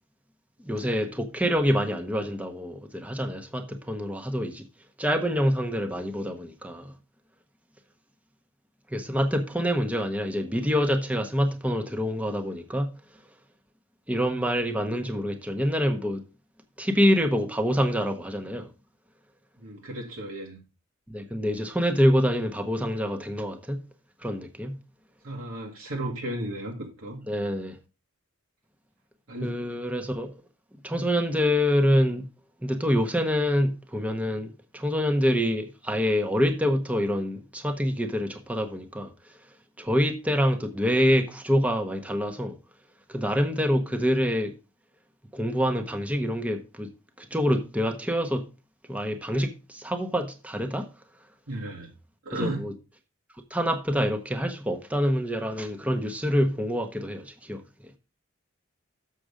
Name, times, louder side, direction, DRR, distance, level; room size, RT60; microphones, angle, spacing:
voice 1, 0.6-4.6 5.0-6.9 8.9-12.9 14.1-16.2 16.8-18.7 21.1-23.8 24.2-24.7 27.3-27.8 29.4-30.3 30.8-32.2 32.6-39.1 39.8-42.6 43.1-44.5 45.3-46.9 47.2-48.4 48.9-50.9 52.3-52.7 53.5-57.6, equal, 5° right, 0.8 m, -26 dB
voice 2, 19.6-20.6 25.2-27.2 29.3-29.6 51.5-51.9 52.2-52.7, right 1 dB, 80° right, 1.5 m, -34 dB
6.8 x 6.4 x 5.0 m
head